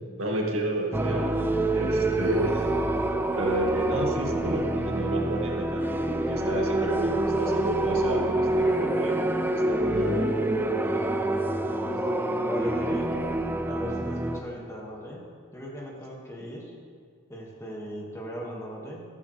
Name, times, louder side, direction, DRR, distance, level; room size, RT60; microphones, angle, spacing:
voice 1, 0.2-1.3 1.7-2.7 3.4-9.3 9.7-11.0 12.7-13.2, right 1 dB, 70° right, -1 dB, 2.0 m, -31 dB
sound 1, 0.9-14.4, right 1 dB, 10° right, 0.4 m, -27 dB
voice 2, 12.4-13.1 13.7-15.2 15.5-16.7 17.3-19.0, equal, 15° left, -3 dB, 2.0 m, -38 dB
14.5 x 14.0 x 3.4 m, 2.1 s
head